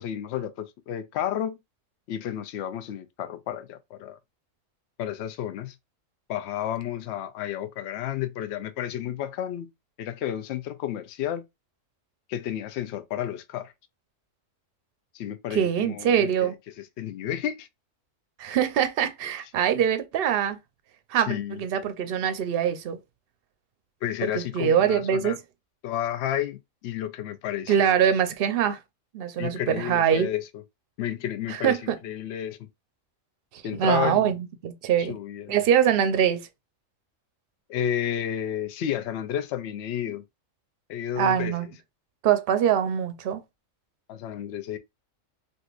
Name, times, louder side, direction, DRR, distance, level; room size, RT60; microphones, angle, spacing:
voice 1, 0.0-1.6 2.1-4.2 5.0-5.8 6.3-9.7 10.0-11.4 12.3-13.7 15.1-17.7 21.1-21.6 24.0-25.4 25.8-28.1 29.4-30.5 31.0-32.7 33.6-34.4 35.0-35.6 37.7-40.2 40.9-41.5 44.1-44.8, left 10 dB, 65° left, 0.8 m, -31 dB
voice 2, 15.5-16.5 18.4-20.6 21.1-23.0 24.2-25.3 27.7-28.8 29.1-30.3 31.5-32.0 33.5-35.2 35.5-36.5 41.2-41.7 42.2-43.4, right 9 dB, 60° right, 0.7 m, -23 dB
3.6 x 2.6 x 2.4 m
omnidirectional pair, 1.3 m